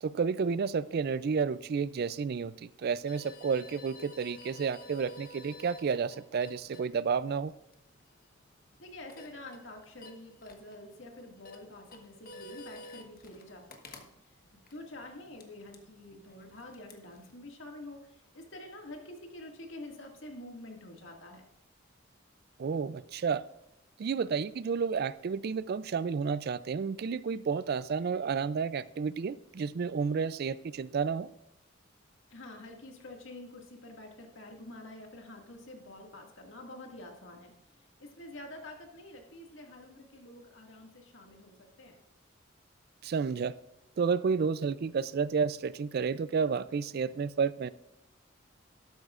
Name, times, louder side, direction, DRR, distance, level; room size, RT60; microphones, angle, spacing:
voice 1, 0.0-7.5 22.6-23.4 24.0-31.3 43.0-43.5 44.0-47.7, right 5 dB, 50° right, 17 dB, 0.4 m, -31 dB
sound 1, 3.1-17.5, left 1 dB, 45° left, 1.2 m, -53 dB
voice 2, 8.8-14.4 14.7-21.5 32.3-42.0, left 1 dB, 65° left, 2 dB, 2.0 m, -48 dB
12.5 x 12.5 x 2.5 m, 0.83 s
head